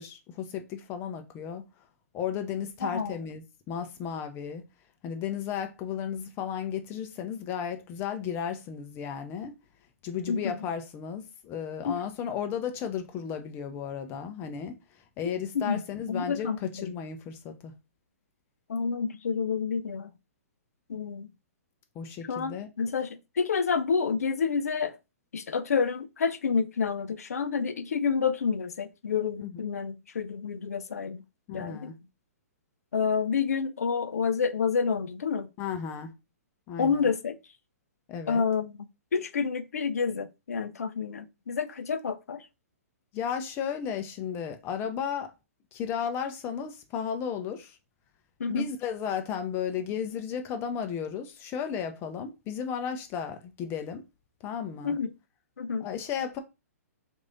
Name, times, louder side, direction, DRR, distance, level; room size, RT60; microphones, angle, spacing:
voice 1, 0.0-1.7 2.1-4.6 5.0-9.5 10.0-14.7 15.2-17.7 21.9-22.7 29.4-29.6 31.5-32.0 35.6-36.1 36.7-37.1 38.1-38.4 43.1-45.3 45.7-47.8 48.5-54.0 54.4-54.9 55.8-56.4, left 8 dB, 30° left, 0.7 m, -34 dB
voice 2, 2.8-3.1 10.3-10.6 11.8-12.0 15.5-15.8 16.1-16.9 18.7-20.1 20.9-21.3 22.3-25.0 25.3-31.2 31.5-31.9 32.9-35.5 36.8-37.3 38.3-38.7 39.1-42.4 48.4-48.7 54.8-55.1 55.6-55.9, left 5 dB, 75° left, 0.6 m, -29 dB
3.2 x 2.6 x 3.8 m
hypercardioid pair, 130°, 8 cm